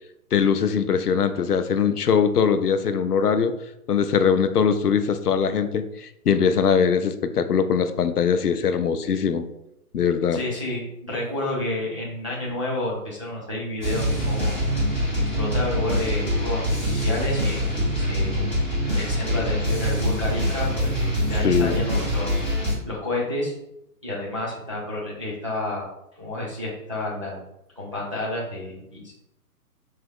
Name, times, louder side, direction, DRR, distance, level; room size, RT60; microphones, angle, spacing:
voice 1, 0.3-3.5 3.9-9.4 9.9-10.4 21.4-21.8, left 6 dB, 75° left, 10 dB, 0.5 m, -21 dB
voice 2, 10.3-14.6 15.1-18.5 18.9-22.4 22.8-23.5 24.0-25.9 26.2-27.4 27.8-29.1, left 1 dB, 25° right, -4 dB, 0.4 m, -30 dB
sound 1, 13.8-22.7, equal, 5° left, 1.1 m, -24 dB
4.5 x 3.3 x 2.3 m, 0.82 s
figure-of-eight pair, 130°, 47 cm